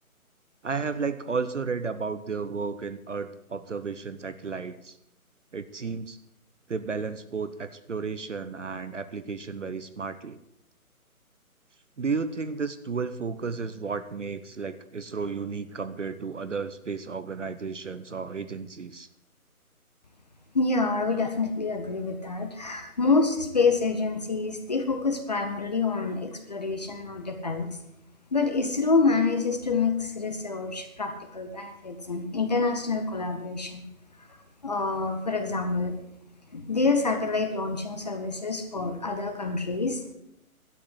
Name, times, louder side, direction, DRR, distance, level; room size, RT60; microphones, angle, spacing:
voice 1, 0.6-5.0 5.5-6.2 6.7-10.4 12.0-19.1, right 5 dB, 55° right, 12 dB, 0.8 m, -33 dB
voice 2, 20.5-27.7 28.3-33.8 34.6-36.0 36.5-40.0, left 4 dB, 30° left, 7 dB, 0.9 m, -27 dB
12.0 x 8.4 x 7.7 m, 0.81 s
figure-of-eight pair, 145°, 44 cm